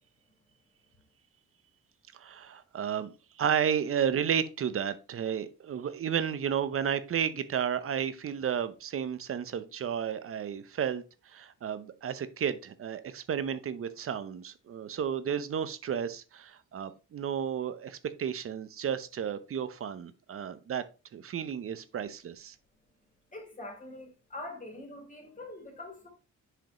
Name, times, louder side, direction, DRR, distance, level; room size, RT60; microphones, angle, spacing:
voice 1, 2.1-20.8 21.1-22.6, right 8 dB, 45° right, 0.7 m, -32 dB
voice 2, 23.3-26.1, left 2 dB, 25° left, 3.0 m, -44 dB
7.6 x 5.0 x 3.0 m
cardioid pair, 90°, 30 cm